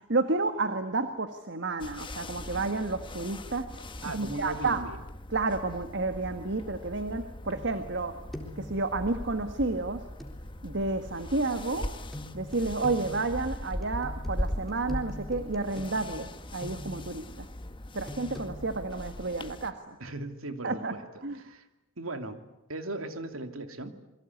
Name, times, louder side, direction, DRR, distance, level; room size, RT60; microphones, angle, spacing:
voice 1, 0.1-3.7 4.0-4.8 5.3-8.2 8.6-10.0 10.6-11.9 12.3-17.5 17.9-20.0 20.6-20.9 21.2-21.4, right 3 dB, 55° right, 8 dB, 1.6 m, -31 dB
sound 1, 1.8-19.7, left 1 dB, 25° left, 1.2 m, -40 dB
voice 2, 4.0-5.0 20.0-21.6 22.0-22.4 22.7-23.9, right 2 dB, 80° right, 8 dB, 2.6 m, -38 dB
sound 2, 7.6-8.0 8.3-8.7 10.2-10.4 12.1-17.1 18.1-18.5, left 1 dB, ahead, 3.7 m, -43 dB
27.5 x 22.5 x 9.6 m, 0.90 s
head